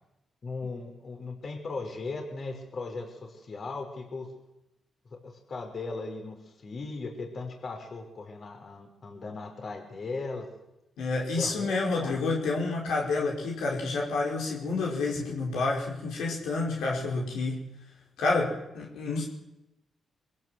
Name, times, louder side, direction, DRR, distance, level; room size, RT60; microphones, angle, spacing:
voice 1, 0.4-4.3 5.2-10.5 11.4-12.2, left 3 dB, 55° left, 3 dB, 5.7 m, -38 dB
voice 2, 11.0-17.7 18.2-19.2, left 3 dB, 85° left, -2 dB, 5.5 m, -29 dB
24.5 x 16.0 x 8.1 m, 0.91 s
supercardioid pair, 55°, 0 cm